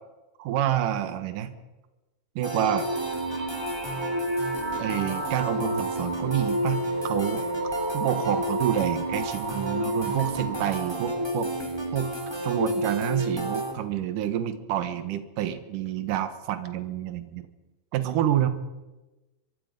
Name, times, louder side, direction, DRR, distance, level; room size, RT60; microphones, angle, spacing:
voice 1, 0.4-1.5 2.4-2.9 4.8-7.4 7.9-11.5 11.9-12.1 12.4-17.5 17.9-18.5, right 11 dB, 80° right, 10 dB, 1.9 m, -28 dB
sound 1, 2.4-13.7, equal, 5° right, 2.5 m, -30 dB
sound 2, 2.6-10.7, right 4 dB, 55° right, 8.9 m, -36 dB
24.5 x 24.0 x 5.3 m, 1.1 s
omnidirectional pair, 5.6 m